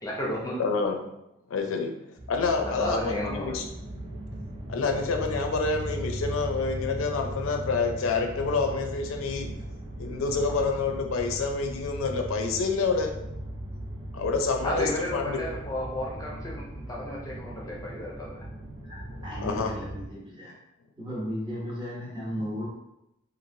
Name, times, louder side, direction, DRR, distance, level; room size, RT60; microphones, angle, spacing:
voice 1, 0.0-0.6 2.6-3.5 14.6-18.4, equal, 15° left, -3 dB, 0.5 m, -33 dB
voice 2, 0.6-1.0 1.5-1.9 2.3-3.6 4.7-9.5 10.0-13.2 14.1-15.4 19.2-19.7 22.4-22.5, left 4 dB, 80° left, 4 dB, 0.4 m, -28 dB
sound 1, 2.2-20.1, right 1 dB, 60° right, 1.4 m, -38 dB
voice 3, 18.9-20.5 21.0-22.7, equal, 20° right, -6 dB, 0.9 m, -35 dB
3.0 x 2.5 x 2.6 m, 0.84 s
head